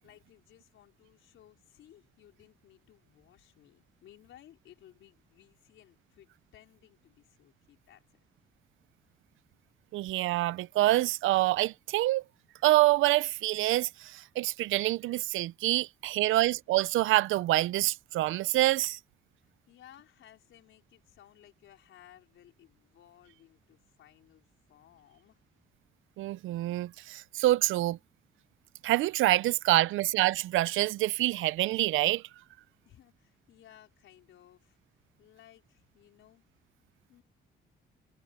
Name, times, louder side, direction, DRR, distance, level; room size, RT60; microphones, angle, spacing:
voice 1, 0.0-8.2 19.7-25.4 32.8-34.8 35.2-36.4 37.1-37.2, left 12 dB, 80° left, 4.8 m, -59 dB
voice 2, 9.9-12.2 12.6-19.0 26.2-28.0 28.8-32.2, right 16 dB, 85° right, 0.6 m, -26 dB
cardioid pair, 90°, 20 cm